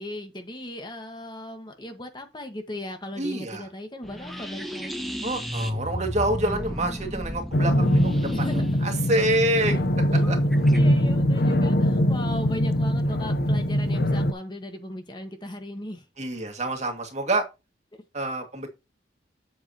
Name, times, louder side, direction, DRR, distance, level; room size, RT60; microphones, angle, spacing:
voice 1, 0.0-5.2 6.5-7.4 8.3-8.6 9.7-9.8 10.1-16.1 17.9-18.0, left 1 dB, 25° left, 1.5 m, -38 dB
voice 2, 3.2-3.6 5.2-8.3 8.8-9.7 10.1-10.4 16.2-17.4 18.1-18.7, right 1 dB, 40° right, 2.1 m, -27 dB
sound 1, 4.0-10.8, equal, ahead, 1.3 m, -33 dB
sound 2, 7.5-14.3, equal, 55° left, 0.8 m, -22 dB
8.3 x 7.9 x 2.9 m
head